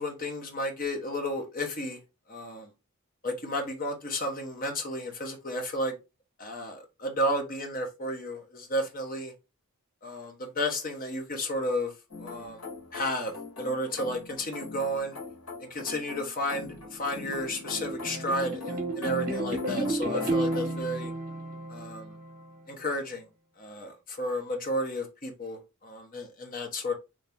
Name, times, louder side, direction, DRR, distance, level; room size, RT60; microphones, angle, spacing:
voice 1, 0.0-2.0 2.3-2.7 3.2-5.9 6.4-9.3 10.0-11.9 12.2-12.7 12.9-15.1 15.6-21.1 21.7-22.1 22.7-23.3 23.6-27.0, left 1 dB, 40° left, 0.9 m, -32 dB
sound 1, 12.1-20.8, left 4 dB, 70° left, 1.6 m, -43 dB
sound 2, 16.8-22.4, right 1 dB, 40° right, 1.0 m, -32 dB
3.2 x 2.8 x 3.4 m
head